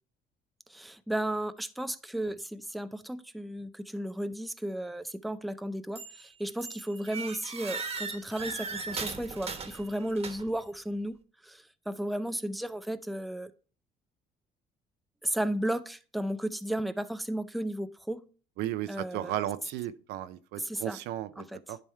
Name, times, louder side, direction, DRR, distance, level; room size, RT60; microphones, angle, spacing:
voice 1, 0.7-11.2 11.4-13.5 15.2-18.3 18.9-19.3 20.6-21.0 21.4-21.6, right 1 dB, ahead, 0.4 m, -34 dB
sound 1, 6.0-6.3 6.6-10.6, right 4 dB, 35° right, 1.2 m, -38 dB
voice 2, 18.6-21.8, right 13 dB, 85° right, 0.6 m, -35 dB
10.5 x 3.5 x 4.3 m
cardioid pair, 110°, 17 cm